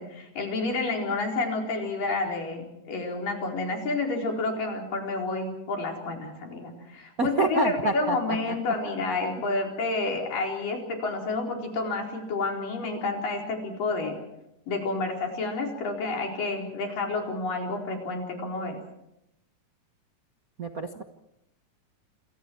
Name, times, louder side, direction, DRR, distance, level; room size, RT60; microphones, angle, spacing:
voice 1, 0.0-14.2 14.7-18.8, left 3 dB, 90° left, 1 dB, 6.0 m, -30 dB
voice 2, 7.2-8.4 20.6-21.0, right 2 dB, 55° right, 5 dB, 0.9 m, -27 dB
28.0 x 28.0 x 4.7 m, 0.85 s
omnidirectional pair, 3.8 m